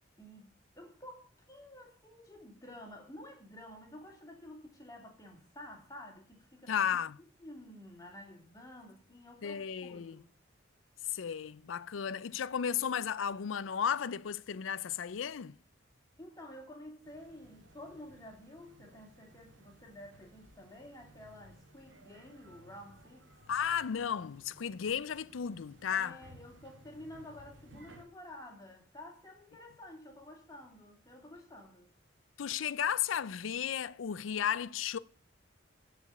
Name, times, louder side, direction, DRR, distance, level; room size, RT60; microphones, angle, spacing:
voice 1, 0.2-7.0 7.4-10.3 16.2-23.3 25.9-31.9, left 1 dB, 20° left, 2.6 m, -51 dB
voice 2, 6.7-7.2 9.4-10.2 11.1-15.6 23.5-26.2 32.4-35.0, left 8 dB, 85° left, 0.5 m, -34 dB
sound 1, 17.0-28.0, right 1 dB, 70° right, 1.9 m, -59 dB
14.0 x 5.1 x 6.9 m
head